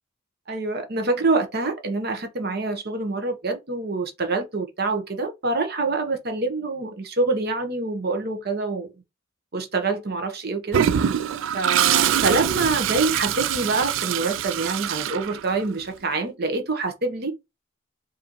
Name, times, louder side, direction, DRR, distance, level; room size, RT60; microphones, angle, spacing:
voice 1, 0.5-8.9 9.5-10.8 11.5-17.4, right 3 dB, 50° right, 0.9 m, -26 dB
Toilet flush, 10.7-15.8, right 10 dB, 65° right, 0.3 m, -24 dB
4.9 x 2.6 x 2.9 m
head